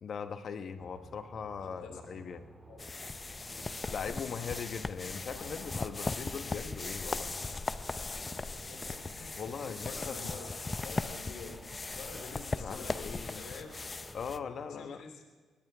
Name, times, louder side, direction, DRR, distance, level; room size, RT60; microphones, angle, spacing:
voice 1, 0.0-2.4 3.9-7.4 9.4-10.3 12.6-13.4 14.1-15.0, left 6 dB, 55° left, 9 dB, 1.1 m, -40 dB
sound 1, 0.8-14.8, right 2 dB, 15° right, 2.1 m, -53 dB
voice 2, 1.6-2.0 2.6-2.9 5.3-5.5 6.6-7.0 8.4-13.7 14.7-15.3, left 4 dB, 75° left, 3 dB, 2.9 m, -49 dB
sound 2, 2.8-14.4, left 3 dB, 25° left, 0.6 m, -38 dB
22.0 x 19.0 x 3.5 m, 1.5 s
cardioid pair, 90°, 0 cm